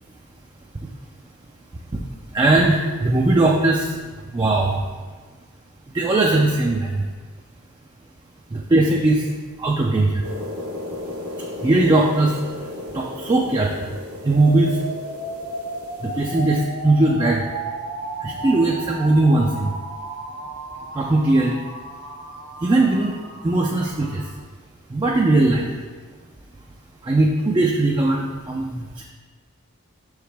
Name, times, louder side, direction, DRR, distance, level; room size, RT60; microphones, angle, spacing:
voice 1, 2.3-3.9 4.3-4.8 5.9-7.0 8.5-9.2 9.6-10.1 11.6-12.4 12.9-13.7 14.2-14.8 16.0-17.4 18.2-19.7 21.0-21.6 22.6-23.1 23.4-24.2 24.9-25.7 27.1-29.0, right 2 dB, 20° right, -1 dB, 0.3 m, -19 dB
sound 1, 10.2-16.6, left 1 dB, 85° right, 1.1 m, -35 dB
sound 2, 14.3-24.3, right 2 dB, 60° right, 1.0 m, -34 dB
6.3 x 4.8 x 3.4 m, 1.4 s
head